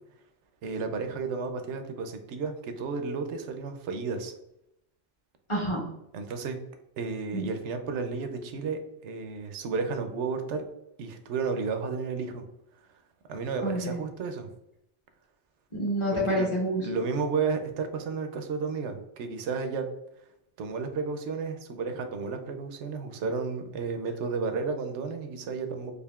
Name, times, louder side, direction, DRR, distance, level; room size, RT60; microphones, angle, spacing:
voice 1, 0.6-4.3 6.1-6.6 7.0-10.6 11.0-12.4 13.3-14.5 16.1-16.5 16.8-19.8 20.6-25.9, right 4 dB, 75° right, 6 dB, 0.9 m, -32 dB
voice 2, 5.5-5.8 7.3-7.5 13.6-14.0 15.7-16.8, equal, 25° left, -2 dB, 0.9 m, -28 dB
5.0 x 2.5 x 2.3 m, 0.82 s
omnidirectional pair, 1.2 m